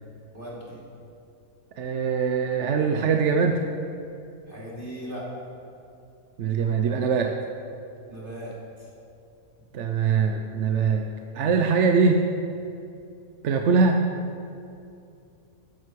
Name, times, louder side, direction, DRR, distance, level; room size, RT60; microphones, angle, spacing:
voice 1, 0.3-0.8 4.5-5.3 8.1-8.9, equal, 35° right, -7 dB, 2.9 m, -38 dB
voice 2, 1.8-3.6 6.4-7.3 9.7-11.1 11.3-12.2 13.4-14.0, right 5 dB, 60° right, 4 dB, 1.0 m, -22 dB
13.5 x 10.5 x 4.7 m, 2.6 s
omnidirectional pair, 1.5 m